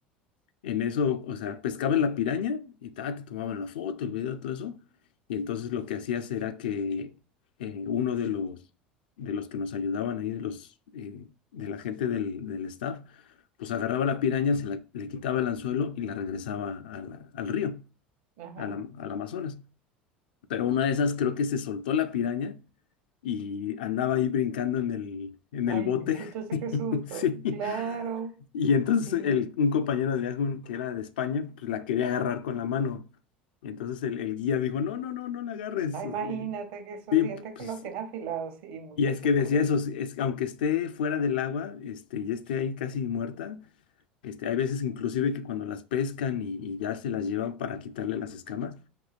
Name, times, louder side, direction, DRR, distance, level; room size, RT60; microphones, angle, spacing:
voice 1, 0.6-4.8 5.3-7.1 7.6-8.6 9.2-10.7 10.9-13.1 13.6-17.8 18.6-19.6 20.5-22.6 23.2-28.0 28.5-33.0 33.6-36.5 37.1-37.7 39.0-43.6 44.2-48.8, left 7 dB, 65° left, 0.4 m, -29 dB
voice 2, 18.4-18.8 25.7-27.3 27.5-28.4 29.1-29.4 35.9-39.0 39.4-39.6, right 7 dB, 55° right, 0.8 m, -36 dB
5.3 x 2.7 x 2.4 m
figure-of-eight pair, 70°, 5 cm